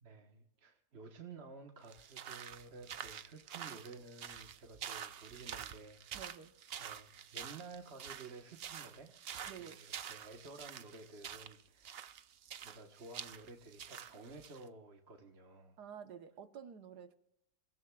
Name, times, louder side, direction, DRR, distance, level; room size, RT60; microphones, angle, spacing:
voice 1, 0.0-6.2 6.8-9.1 9.6-9.8 10.0-12.1 12.5-15.8, right 3 dB, 40° right, 3 dB, 1.3 m, -53 dB
sound 1, 1.8-14.6, right 9 dB, 85° right, 0.5 m, -48 dB
voice 2, 6.1-6.5 9.5-9.8 15.8-17.2, right 8 dB, 70° right, 9 dB, 1.5 m, -50 dB
28.0 x 16.5 x 2.3 m, 0.79 s
omnidirectional pair, 1.9 m